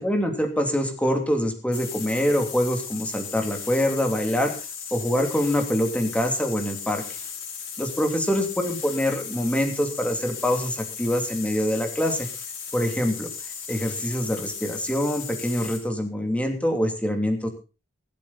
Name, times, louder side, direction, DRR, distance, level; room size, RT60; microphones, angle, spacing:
voice 1, 0.0-4.5 4.9-7.0 7.8-12.3 12.7-13.3 13.7-17.5, equal, 5° left, 4 dB, 2.7 m, -25 dB
sound 1, 1.7-15.9, left 6 dB, 75° left, 5.7 m, -36 dB
23.0 x 8.5 x 4.1 m, 0.33 s
head